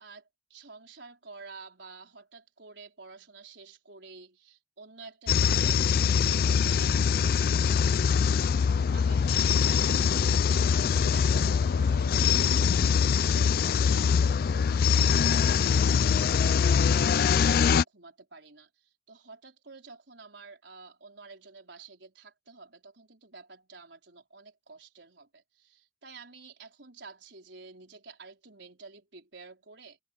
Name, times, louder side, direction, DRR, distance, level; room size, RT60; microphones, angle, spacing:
voice 1, 0.0-30.0, right 4 dB, 80° right, 4.4 m, -50 dB
sound 1, 5.3-17.8, left 6 dB, 55° left, 0.3 m, -23 dB
head